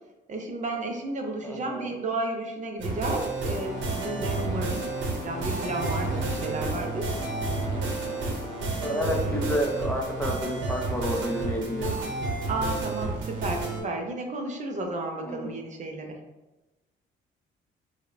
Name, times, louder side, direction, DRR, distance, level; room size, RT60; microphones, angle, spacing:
voice 1, 0.3-4.9 5.2-7.2 8.8-9.3 12.5-16.2, right 2 dB, 40° right, 3 dB, 0.4 m, -33 dB
voice 2, 1.4-1.9 8.8-12.0 15.2-15.6, equal, 10° left, 0 dB, 0.5 m, -30 dB
sound 1, 2.8-13.8, right 3 dB, 75° right, 0.7 m, -31 dB
sound 2, 3.5-8.6, left 4 dB, 65° left, 0.7 m, -40 dB
2.6 x 2.0 x 2.4 m, 1.0 s
cardioid pair, 90°, 20 cm